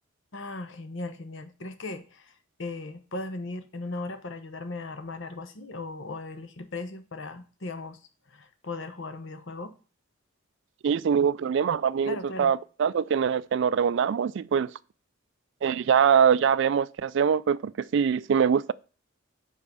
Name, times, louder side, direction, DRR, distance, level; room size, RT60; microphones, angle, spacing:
voice 1, 0.3-2.3 2.6-8.0 8.3-9.7 12.0-12.5, left 2 dB, 60° left, 0.9 m, -37 dB
voice 2, 10.8-14.7 15.6-18.7, right 7 dB, 60° right, 0.3 m, -23 dB
5.5 x 5.0 x 6.4 m
head